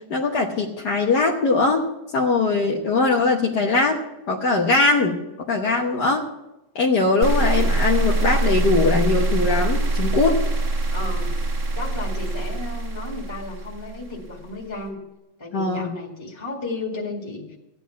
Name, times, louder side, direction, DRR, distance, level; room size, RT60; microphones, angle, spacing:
voice 1, 0.1-1.8 2.1-4.0 4.3-5.2 5.5-6.2 6.8-10.4 15.5-16.0, left 3 dB, 75° left, -1 dB, 1.8 m, -21 dB
sound 1, 7.2-14.3, right 2 dB, 50° right, 1.7 m, -23 dB
voice 2, 10.9-11.4 11.7-15.0 15.4-17.6, left 2 dB, 15° left, -1 dB, 2.0 m, -33 dB
14.5 x 10.0 x 5.7 m, 0.96 s
omnidirectional pair, 1.8 m